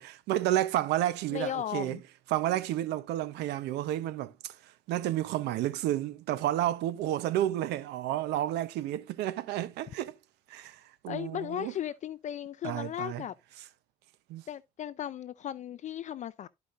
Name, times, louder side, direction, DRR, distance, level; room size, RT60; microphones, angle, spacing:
voice 1, 0.0-2.0 2.3-10.1 10.5-11.7 12.6-13.2 14.3-14.4, right 13 dB, 85° right, 0.8 m, -31 dB
voice 2, 1.3-2.0 11.1-13.3 14.5-16.5, left 10 dB, 45° left, 0.4 m, -36 dB
13.0 x 5.0 x 2.5 m
cardioid pair, 110°, 17 cm